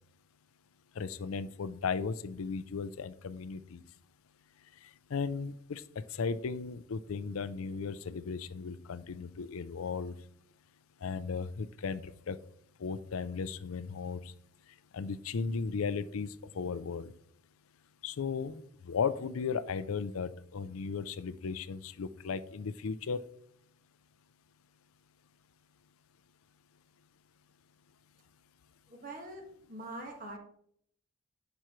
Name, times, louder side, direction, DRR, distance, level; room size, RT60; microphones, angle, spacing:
voice 1, 1.0-3.8 5.1-10.1 11.0-12.4 12.8-14.3 14.9-17.1 18.0-23.2, left 5 dB, 90° left, 15 dB, 0.5 m, -36 dB
voice 2, 28.9-29.4 29.7-30.4, right 2 dB, 40° right, 2 dB, 1.7 m, -43 dB
10.0 x 6.2 x 3.1 m, 0.67 s
head